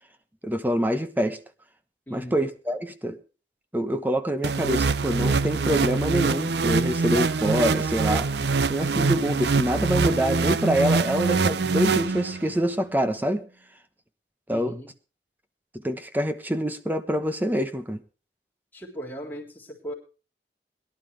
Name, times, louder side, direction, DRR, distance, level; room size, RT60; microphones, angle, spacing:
voice 1, 0.4-1.4 2.1-3.2 3.7-8.3 8.7-13.4 14.5-14.7 15.7-18.0, equal, 10° right, 1.0 m, -26 dB
voice 2, 2.1-2.5 14.5-14.9 18.7-19.9, equal, 10° left, 3.6 m, -38 dB
sound 1, 4.4-12.6, right 4 dB, 75° right, 0.6 m, -24 dB
21.5 x 11.5 x 3.3 m
head